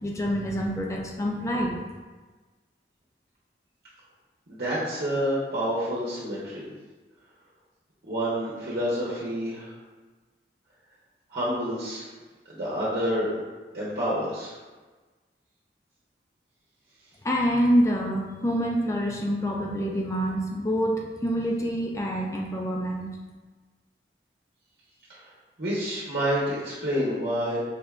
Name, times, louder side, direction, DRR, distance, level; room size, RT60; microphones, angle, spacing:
voice 1, 0.0-1.8 17.2-23.1, equal, 15° left, -1 dB, 0.4 m, -26 dB
voice 2, 4.5-6.7 8.1-9.7 11.3-12.1 12.5-13.3 13.7-14.6 25.1-25.2 25.6-27.6, equal, 60° right, -8 dB, 0.9 m, -28 dB
5.1 x 3.3 x 2.4 m, 1.3 s
head